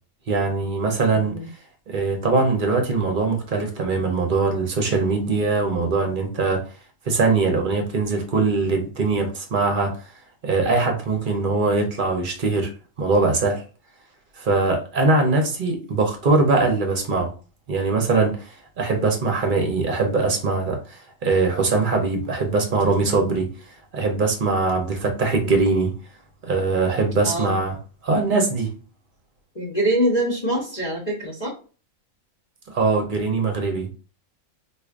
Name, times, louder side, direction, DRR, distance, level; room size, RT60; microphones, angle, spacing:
voice 1, 0.3-1.3 1.9-6.6 7.1-9.9 10.4-12.7 13.0-13.6 14.4-17.3 17.7-18.5 18.8-23.5 23.9-25.9 26.4-27.8 28.0-28.7 32.7-33.9, right 3 dB, 45° right, 0.9 m, -21 dB
voice 2, 1.1-1.5 25.4-25.8 27.2-27.6 29.5-31.5, right 1 dB, 35° left, 1.1 m, -25 dB
4.7 x 2.6 x 2.4 m
omnidirectional pair, 1.3 m